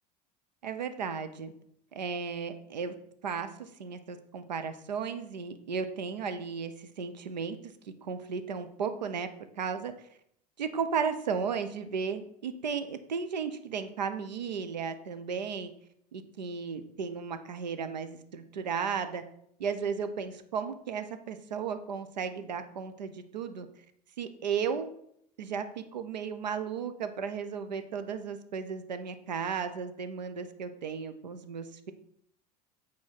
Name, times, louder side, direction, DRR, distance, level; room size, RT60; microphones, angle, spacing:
voice 1, 0.6-1.5 1.9-2.9 3.2-7.6 7.8-9.3 9.6-9.9 10.6-15.7 16.1-19.2 19.6-23.7 24.2-25.0 25.4-25.7 25.9-31.9, right 6 dB, 85° right, 10 dB, 0.9 m, -34 dB
8.8 x 4.4 x 5.9 m, 0.70 s
hypercardioid pair, 75°, 21 cm